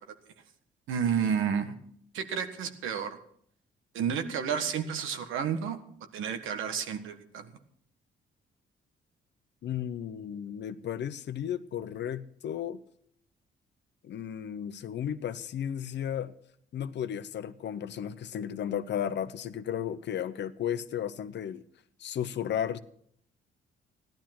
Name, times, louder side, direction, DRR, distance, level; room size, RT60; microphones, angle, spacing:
voice 1, 0.9-1.7 2.1-3.2 3.9-5.8 6.1-7.5, right 7 dB, 85° right, 7 dB, 1.6 m, -31 dB
voice 2, 9.6-12.8 14.0-16.3 16.7-21.6 22.0-22.8, left 9 dB, 60° left, 13 dB, 0.9 m, -34 dB
15.0 x 12.0 x 6.0 m, 0.67 s
cardioid pair, 90°, 20 cm